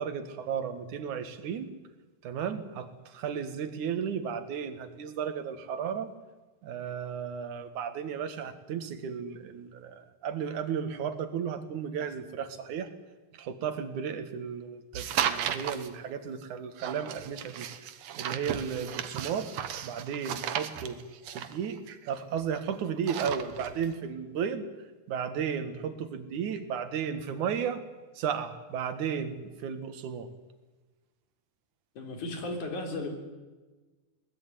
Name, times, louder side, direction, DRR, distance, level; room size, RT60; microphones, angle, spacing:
voice 1, 0.0-1.7 2.2-6.1 6.6-12.9 13.4-17.7 18.2-19.5 19.8-21.0 21.3-21.8 22.1-24.7 25.1-27.8 28.2-30.3, right 7 dB, 90° right, 10 dB, 3.1 m, -34 dB
sound 1, 14.9-15.9 16.8-22.6 22.9-23.9, right 9 dB, 65° right, 2.3 m, -35 dB
voice 2, 32.0-33.1, left 2 dB, 90° left, 4 dB, 5.0 m, -35 dB
21.5 x 19.0 x 9.9 m, 1.2 s
omnidirectional pair, 3.3 m